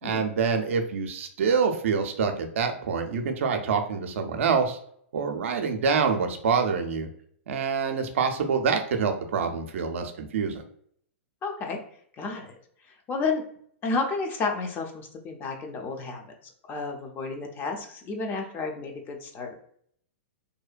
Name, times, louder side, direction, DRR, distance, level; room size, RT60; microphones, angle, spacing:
voice 1, 0.0-4.8 5.1-7.1 7.5-10.6, right 5 dB, 70° right, 5 dB, 0.4 m, -26 dB
voice 2, 11.4-11.8 12.2-12.5 13.1-13.4 13.8-16.2 16.7-19.5, left 4 dB, 25° left, 3 dB, 0.5 m, -31 dB
2.7 x 2.1 x 2.4 m, 0.64 s
hypercardioid pair, 120°, 7 cm